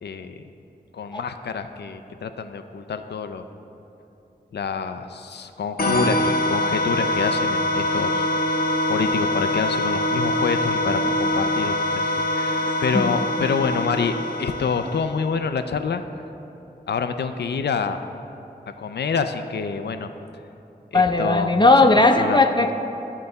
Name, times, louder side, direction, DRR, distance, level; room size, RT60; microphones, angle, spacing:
voice 1, 0.0-0.4 0.9-3.4 4.5-8.3 8.9-16.0 16.9-18.0 18.8-20.1 20.9-21.5 22.2-22.4, left 5 dB, 80° left, 8 dB, 0.4 m, -27 dB
sound 1, 5.8-15.2, left 1 dB, 65° left, 0.8 m, -24 dB
voice 2, 20.9-22.7, left 2 dB, 25° left, 6 dB, 0.6 m, -17 dB
11.0 x 4.1 x 7.8 m, 2.9 s
cardioid pair, 50°, 17 cm